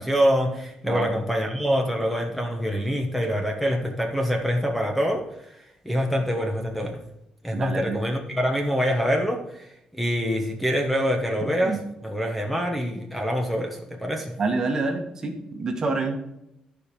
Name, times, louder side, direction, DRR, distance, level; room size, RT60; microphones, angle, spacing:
voice 1, 0.0-7.0 7.4-14.3, equal, 5° left, 2 dB, 1.2 m, -25 dB
voice 2, 7.5-8.0 11.4-11.8 14.4-16.2, right 3 dB, 30° right, 4 dB, 1.5 m, -27 dB
13.0 x 5.1 x 5.2 m, 0.81 s
cardioid pair, 160°, 2 cm